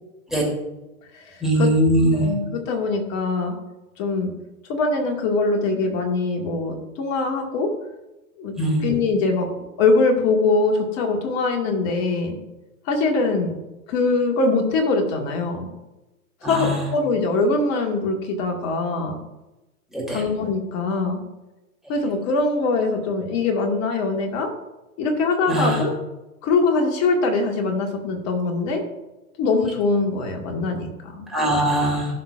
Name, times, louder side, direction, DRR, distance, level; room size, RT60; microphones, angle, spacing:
voice 1, 1.4-2.3 8.6-8.9 16.4-16.8 19.9-20.2 25.5-25.8 31.3-32.1, right 1 dB, ahead, -4 dB, 3.0 m, -20 dB
voice 2, 2.1-3.6 4.0-4.3 4.7-7.7 8.4-8.5 8.8-9.5 9.8-12.4 12.9-13.5 13.9-15.7 16.4-19.2 20.1-21.2 21.9-24.5 25.0-25.9 26.4-28.8 29.4-31.3, left 3 dB, 35° left, 2 dB, 1.8 m, -22 dB
15.5 x 5.9 x 2.5 m, 1.0 s
hypercardioid pair, 115°, 44 cm